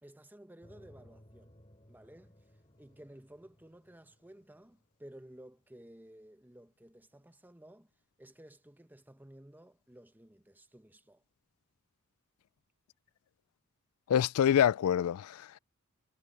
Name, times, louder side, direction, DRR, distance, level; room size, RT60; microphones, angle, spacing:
voice 1, 0.0-1.6 1.9-2.4 2.8-7.9 8.2-11.2, right 1 dB, 10° right, 0.9 m, -55 dB
sound 1, 0.6-5.5, equal, 25° left, 4.6 m, -61 dB
voice 2, 14.1-15.6, left 9 dB, 85° left, 0.3 m, -26 dB
head